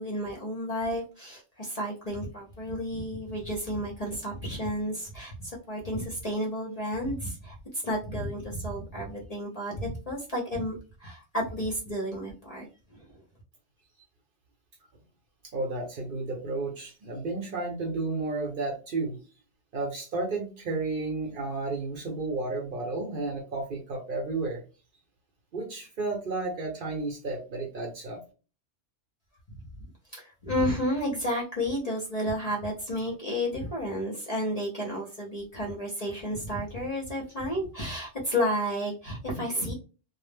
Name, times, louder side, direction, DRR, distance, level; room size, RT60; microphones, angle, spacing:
voice 1, 0.0-10.7 11.0-13.2 30.1-39.7, equal, 45° left, -2 dB, 0.6 m, -32 dB
voice 2, 15.5-19.2 19.7-24.6 25.5-28.2, right 3 dB, 55° right, 1 dB, 0.7 m, -32 dB
2.1 x 2.0 x 3.3 m, 0.35 s
omnidirectional pair, 1.2 m